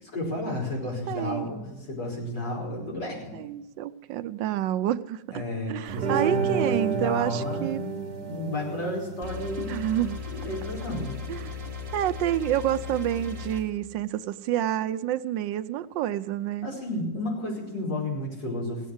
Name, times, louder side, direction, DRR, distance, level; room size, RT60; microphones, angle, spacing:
voice 1, 0.1-3.4 5.3-9.8 10.3-11.2 16.6-18.9, left 1 dB, 70° left, -2 dB, 5.7 m, -32 dB
voice 2, 1.1-1.5 3.3-5.4 5.7-7.8 9.6-10.2 11.3-11.6 11.9-16.7, right 12 dB, 85° right, 13 dB, 1.4 m, -28 dB
sound 1, 5.9-13.6, right 6 dB, 60° right, 1.6 m, -33 dB
sound 2, 9.2-13.6, left 6 dB, 30° right, 2.0 m, -37 dB
17.5 x 8.3 x 7.8 m, 1.0 s
omnidirectional pair, 1.9 m